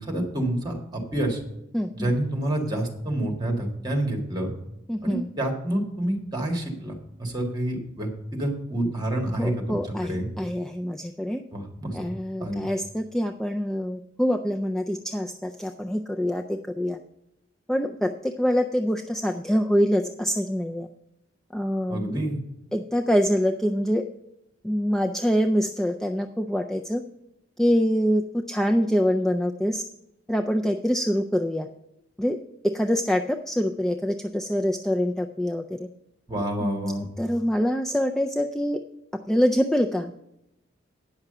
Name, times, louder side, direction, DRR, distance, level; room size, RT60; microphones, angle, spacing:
voice 1, 0.0-1.4 1.9-4.5 5.0-10.3 11.5-12.0 12.4-12.6 21.9-22.4 36.3-37.1, right 1 dB, 25° right, 2 dB, 1.9 m, -28 dB
voice 2, 1.7-2.1 4.9-5.3 9.4-11.4 11.9-17.0 17.7-20.9 21.5-22.3 22.7-24.0 24.6-27.0 27.6-29.8 30.3-31.7 32.2-32.4 32.6-35.9 36.6-38.8 39.1-40.1, equal, ahead, 3 dB, 0.3 m, -25 dB
9.6 x 6.0 x 6.7 m, 0.86 s
head